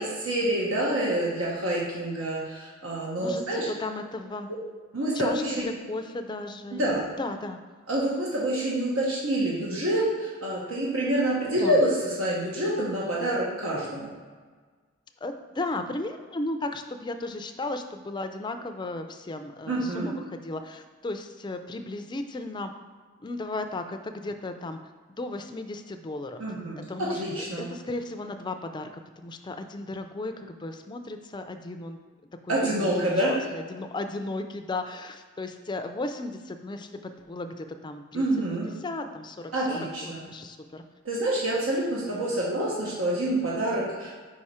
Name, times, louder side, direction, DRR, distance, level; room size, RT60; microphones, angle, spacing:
voice 1, 0.0-3.7 4.5-4.6 4.9-5.5 6.7-7.0 7.9-14.1 19.7-20.1 26.4-27.7 32.5-33.4 38.1-38.7 39.5-40.2 41.0-44.2, right 1 dB, 90° right, -5 dB, 1.2 m, -27 dB
voice 2, 3.2-4.5 5.1-7.6 11.6-11.8 15.2-22.7 23.2-24.8 25.2-26.4 26.9-27.2 27.6-28.9 29.2-32.0 32.5-36.9 37.3-38.2 38.8-40.8, left 2 dB, 20° left, 7 dB, 0.4 m, -35 dB
4.9 x 4.8 x 4.3 m, 1.5 s
head